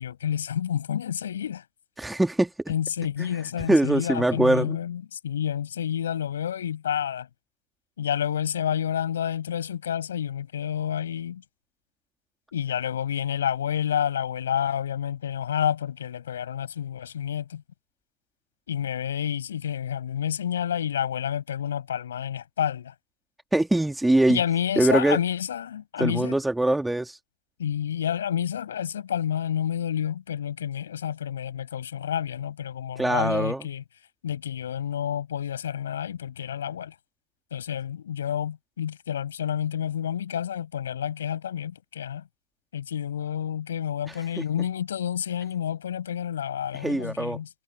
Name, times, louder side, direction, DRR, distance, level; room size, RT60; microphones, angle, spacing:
voice 1, 0.0-1.6 2.7-7.3 8.0-11.4 12.5-17.6 18.7-22.9 24.3-26.4 27.6-33.8 34.2-36.9 37.5-42.2 42.7-47.5, left 9 dB, 65° left, 6.4 m, -29 dB
voice 2, 2.0-2.7 3.7-4.8 23.5-24.4 24.8-25.2 26.0-27.2 33.0-33.7 44.1-44.4 46.7-47.4, right 1 dB, 5° right, 2.4 m, -23 dB
figure-of-eight pair, 95°, 0 cm